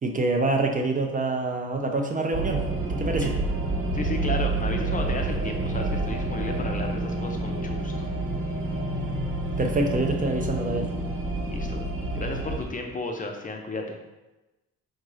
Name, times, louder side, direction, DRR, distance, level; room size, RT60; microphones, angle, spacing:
voice 1, 0.0-2.6 2.9-3.3 9.6-10.9, right 2 dB, 30° right, 3 dB, 0.4 m, -26 dB
sound 1, 2.3-12.6, right 2 dB, 45° right, 0.8 m, -28 dB
voice 2, 3.9-7.9 11.4-11.8 12.1-14.0, left 3 dB, 25° left, 3 dB, 0.5 m, -33 dB
3.8 x 2.5 x 3.0 m, 1.1 s
cardioid pair, 90°, 30 cm